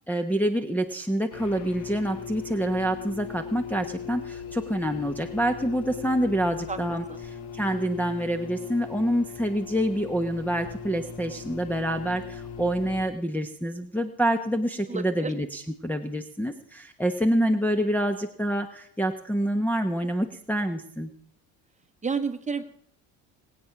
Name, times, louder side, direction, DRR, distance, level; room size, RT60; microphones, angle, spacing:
voice 1, 0.1-21.1, right 1 dB, 5° left, 2 dB, 1.1 m, -27 dB
sound 1, 1.3-13.0, left 7 dB, 80° left, 1.9 m, -39 dB
voice 2, 14.9-15.3 22.0-22.6, right 5 dB, 15° right, 7 dB, 1.5 m, -30 dB
20.5 x 8.6 x 6.0 m, 0.63 s
supercardioid pair, 90°, 41 cm